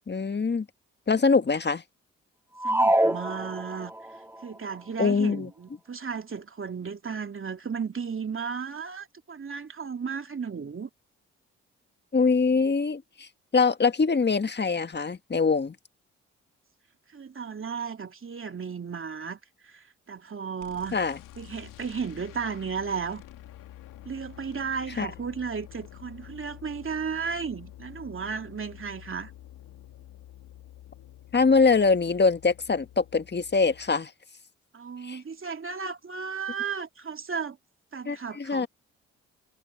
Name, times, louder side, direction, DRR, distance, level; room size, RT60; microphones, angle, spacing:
voice 1, 0.1-0.7 1.1-1.8 5.0-5.5 12.1-13.3 13.5-15.7 20.9-21.2 25.0-25.1 31.3-34.1 35.0-35.2 38.0-38.7, left 4 dB, 35° left, 1.6 m, -23 dB
sound 1, 2.6-4.1, right 1 dB, 5° right, 2.3 m, -24 dB
voice 2, 2.6-3.9 4.4-10.9 17.1-21.0 21.4-23.2 24.0-29.3 34.7-37.6 37.9-38.7, right 6 dB, 40° right, 2.6 m, -34 dB
sound 2, 20.6-33.9, left 13 dB, 80° left, 2.9 m, -48 dB
hypercardioid pair, 45°, 31 cm